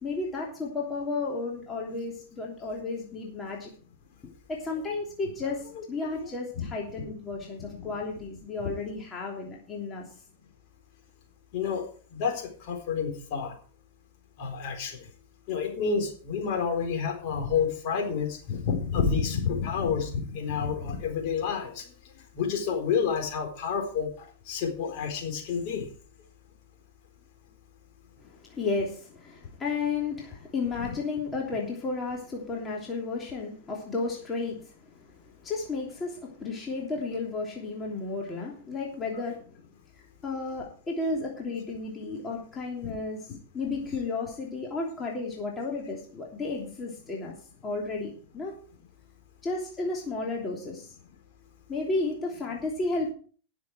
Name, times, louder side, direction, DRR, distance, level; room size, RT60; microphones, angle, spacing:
voice 1, 0.0-3.7 4.2-10.1 28.2-39.4 40.0-47.4 47.6-48.5 49.4-50.9 51.7-53.1, left 3 dB, 20° left, -2 dB, 3.1 m, -33 dB
voice 2, 11.5-11.9 12.1-13.5 14.4-15.0 15.5-21.9 22.3-25.9 39.2-39.3 42.8-43.0, left 6 dB, 45° left, 2 dB, 4.2 m, -29 dB
19.0 x 7.0 x 4.7 m, 0.42 s
figure-of-eight pair, 90°, 0 cm